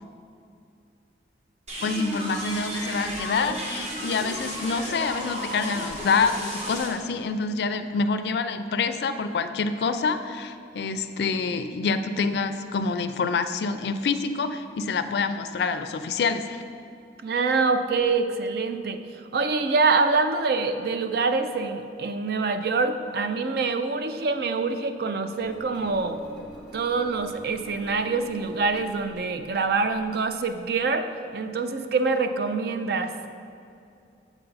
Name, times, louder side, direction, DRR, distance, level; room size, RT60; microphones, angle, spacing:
sound 1, 1.7-6.9, right 1 dB, 40° right, 1.2 m, -33 dB
voice 1, 1.8-16.6, left 4 dB, 65° left, 10 dB, 0.3 m, -27 dB
voice 2, 17.2-19.0 19.3-26.2 26.7-31.1 31.3-33.1, right 4 dB, 60° right, 8 dB, 0.4 m, -25 dB
Engine, 25.4-30.9, equal, ahead, 1.3 m, -47 dB
7.1 x 5.7 x 4.0 m, 2.6 s
head